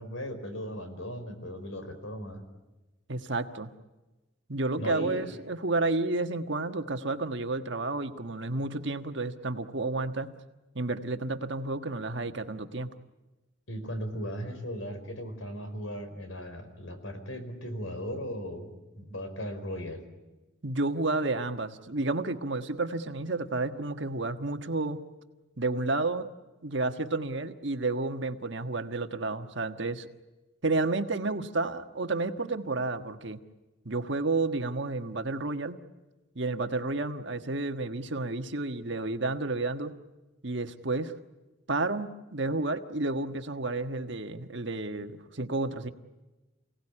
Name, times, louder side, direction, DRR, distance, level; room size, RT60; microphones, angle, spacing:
voice 1, 0.0-2.4 4.8-5.4 13.7-20.0, equal, 75° left, 8 dB, 4.9 m, -37 dB
voice 2, 3.1-3.7 4.5-10.3 10.7-12.9 20.6-25.0 25.6-26.3 26.6-30.1 30.6-33.4 33.8-35.8 36.3-39.9 40.4-41.1 41.7-45.9, right 2 dB, 60° right, 7 dB, 1.4 m, -31 dB
29.0 x 18.0 x 10.0 m, 1.1 s
head